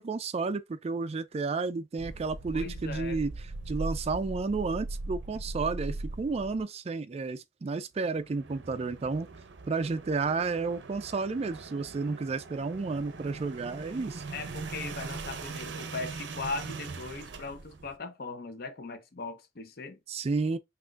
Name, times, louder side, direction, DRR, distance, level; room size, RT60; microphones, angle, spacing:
voice 1, 0.0-3.3 3.7-9.3 9.7-14.2 20.1-20.6, right 4 dB, 35° right, 0.4 m, -31 dB
sound 1, 2.0-6.6 8.1-18.0, right 3 dB, 80° right, 0.6 m, -40 dB
voice 2, 2.5-3.2 13.8-13.9 14.3-20.0, left 3 dB, 60° left, 0.8 m, -39 dB
5.8 x 2.5 x 2.4 m
head